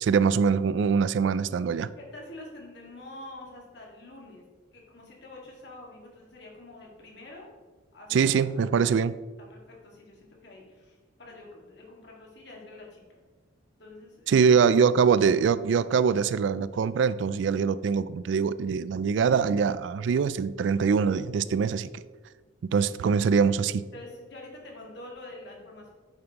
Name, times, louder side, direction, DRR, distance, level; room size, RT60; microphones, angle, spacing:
voice 1, 0.0-1.9 8.1-9.1 14.3-21.9 22.7-23.8, right 6 dB, 65° right, 16 dB, 0.3 m, -23 dB
voice 2, 2.0-4.4 4.7-7.5 7.9-8.9 9.5-13.2 13.8-14.4 23.9-25.9, left 2 dB, 55° left, -2 dB, 2.0 m, -46 dB
8.8 x 7.2 x 3.0 m, 1.4 s
head